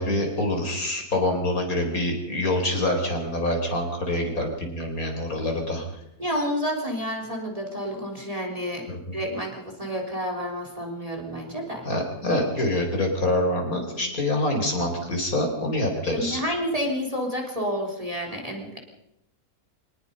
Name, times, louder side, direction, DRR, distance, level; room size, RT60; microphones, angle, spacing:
voice 1, 0.0-5.8 8.9-9.0 11.8-16.4, left 1 dB, 55° left, 2 dB, 5.0 m, -26 dB
voice 2, 6.2-8.9 9.1-11.9 16.1-18.8, equal, 20° right, 1 dB, 3.7 m, -30 dB
24.5 x 19.5 x 5.5 m, 0.83 s
omnidirectional pair, 1.8 m